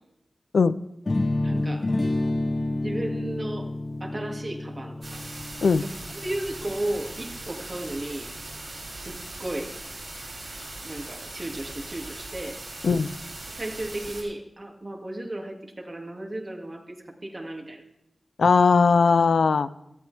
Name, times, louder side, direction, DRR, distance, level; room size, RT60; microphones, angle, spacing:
sound 1, 1.1-7.0, left 2 dB, 45° left, 1.2 m, -29 dB
voice 1, 1.4-1.9 2.8-3.7 4.0-5.0 6.1-8.3 8.9-9.8 10.8-12.6 13.5-17.8, right 1 dB, 40° right, 2 dB, 2.4 m, -34 dB
sound 2, 5.0-14.2, right 2 dB, 65° right, 7.4 m, -40 dB
voice 2, 18.4-19.7, left 5 dB, 85° left, 13 dB, 0.5 m, -19 dB
18.5 x 14.0 x 3.5 m, 0.83 s
cardioid pair, 45°, 0 cm